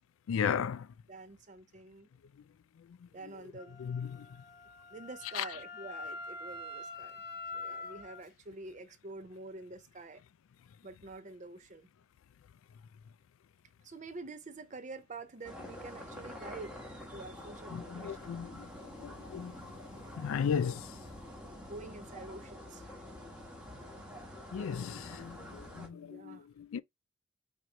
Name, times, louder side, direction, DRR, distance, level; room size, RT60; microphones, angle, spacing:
voice 1, 0.3-0.9 2.8-3.4 3.8-4.3 5.3-5.5 17.7-21.0 24.5-26.8, left 7 dB, 85° left, 0.3 m, -36 dB
voice 2, 1.1-2.1 3.1-3.8 4.9-7.2 7.5-10.2 10.8-11.9 13.8-16.8 17.1-18.3 21.6-23.0 25.8-26.5, right 3 dB, 40° right, 0.5 m, -47 dB
Wind instrument woodwind instrument, 3.6-8.2, left 3 dB, 45° left, 0.9 m, -45 dB
sound 1, 15.4-25.9, left 1 dB, 5° right, 1.0 m, -47 dB
4.4 x 3.0 x 2.5 m
head